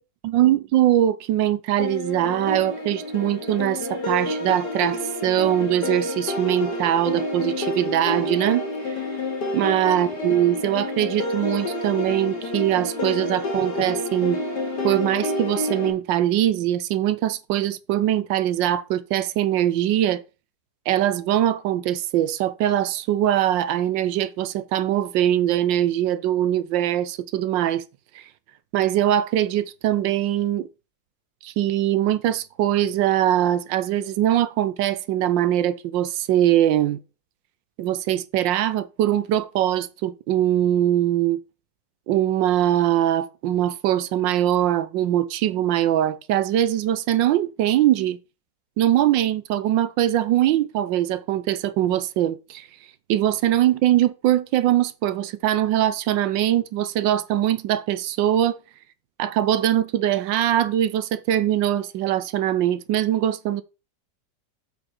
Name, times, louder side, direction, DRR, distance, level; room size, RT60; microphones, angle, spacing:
voice 1, 0.2-8.9 9.5-14.4 14.8-20.2 20.9-27.8 28.1-28.2 28.7-30.7 31.4-37.0 37.8-41.4 42.1-48.2 48.8-52.7 53.1-58.6 59.2-63.6, right 12 dB, 85° right, 1.4 m, -22 dB
sound 1, 1.8-15.9, left 2 dB, 65° left, 3.1 m, -29 dB
7.5 x 4.3 x 6.4 m
omnidirectional pair, 2.0 m